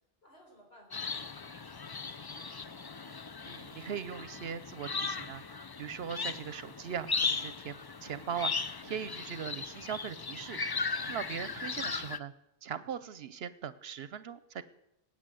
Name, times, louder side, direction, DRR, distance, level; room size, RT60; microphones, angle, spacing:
voice 1, 0.2-2.5 6.7-6.9, equal, 75° left, -1 dB, 5.1 m, -60 dB
sound 1, 0.9-12.2, left 4 dB, 35° left, 0.4 m, -37 dB
voice 2, 3.4-12.3 12.6-14.6, right 8 dB, 75° right, 15 dB, 0.9 m, -40 dB
19.5 x 8.7 x 7.6 m, 0.87 s
omnidirectional pair, 1.0 m